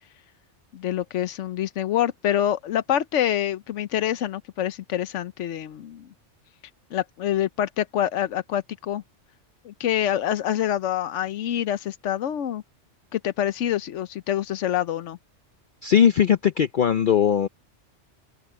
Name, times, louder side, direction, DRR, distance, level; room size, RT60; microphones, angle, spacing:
voice 1, 0.7-6.1 6.9-9.0 9.6-12.6 13.1-15.2, left 11 dB, 90° left, 1.1 m, -26 dB
voice 2, 15.8-17.5, left 8 dB, 55° left, 0.7 m, -19 dB
open air
omnidirectional pair, 1.2 m